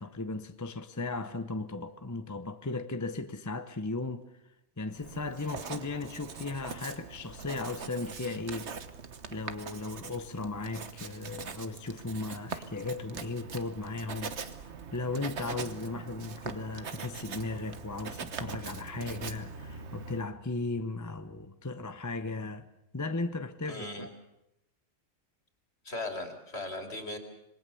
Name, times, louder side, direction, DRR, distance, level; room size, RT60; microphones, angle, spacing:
voice 1, 0.0-4.3 4.8-8.7 9.3-14.4 14.9-22.7 22.9-24.1, left 3 dB, 15° left, 0.7 m, -36 dB
Writing, 4.9-20.3, right 5 dB, 65° right, 1.5 m, -42 dB
voice 2, 23.7-24.1 25.8-27.2, left 2 dB, 55° left, 3.4 m, -37 dB
26.5 x 20.5 x 7.0 m
omnidirectional pair, 1.3 m